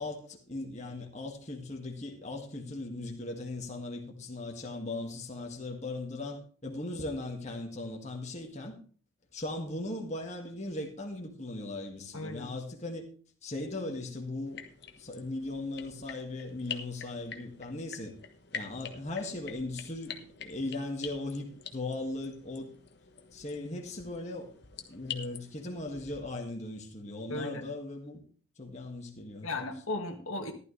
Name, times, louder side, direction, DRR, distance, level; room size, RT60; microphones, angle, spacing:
voice 1, 0.0-8.8 9.3-13.1 13.4-14.6 15.0-18.1 18.5-22.7 23.3-24.5 24.9-28.2 28.6-29.6, left 2 dB, 35° left, 1 dB, 2.0 m, -38 dB
voice 2, 12.1-12.5 27.3-27.7 29.4-30.5, left 2 dB, 80° left, 3 dB, 2.0 m, -36 dB
sound 1, 14.5-26.2, left 7 dB, 50° left, 1.4 m, -46 dB
15.0 x 12.0 x 3.3 m, 0.42 s
head